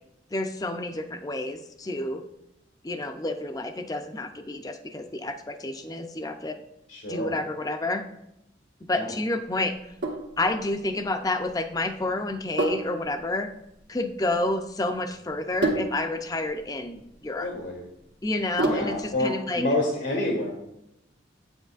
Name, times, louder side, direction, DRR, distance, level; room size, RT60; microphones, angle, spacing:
voice 1, 0.3-2.2 2.8-6.6 7.1-8.1 8.9-9.9 10.4-13.5 13.9-17.5 18.2-19.6, left 2 dB, 20° left, 7 dB, 0.5 m, -29 dB
voice 2, 6.9-7.3 8.9-9.1 17.4-17.9 18.7-20.5, left 1 dB, 85° left, 0 dB, 1.7 m, -28 dB
Sink (filling or washing), 9.7-19.2, right 2 dB, 70° right, 1.2 m, -32 dB
9.1 x 7.9 x 2.4 m, 0.85 s
head